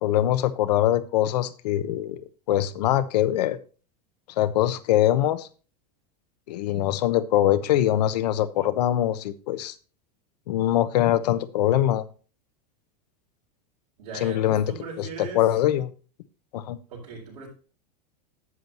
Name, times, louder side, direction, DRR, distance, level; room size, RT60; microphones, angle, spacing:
voice 1, 0.0-2.2 2.5-3.6 4.4-5.5 6.5-9.7 10.5-12.0 14.2-14.7 15.0-15.1 15.3-15.9 16.5-16.8, left 12 dB, 75° left, 1.0 m, -23 dB
voice 2, 14.0-15.5 16.9-17.5, right 4 dB, 70° right, 4.7 m, -39 dB
11.0 x 7.7 x 2.9 m
supercardioid pair, 125°, 21 cm